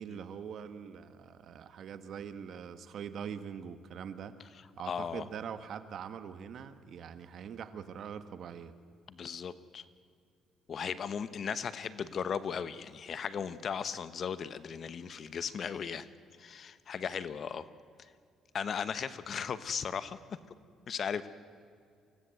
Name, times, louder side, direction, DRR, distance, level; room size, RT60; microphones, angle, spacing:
voice 1, 0.0-4.4 4.8-8.7, right 7 dB, 60° right, 11 dB, 1.3 m, -43 dB
voice 2, 4.9-5.2 9.1-9.8 10.7-16.1 16.4-17.6 18.5-20.2 20.9-21.3, left 7 dB, 50° left, 14 dB, 1.0 m, -36 dB
25.0 x 16.0 x 7.8 m, 2.3 s
cardioid pair, 110°, 0 cm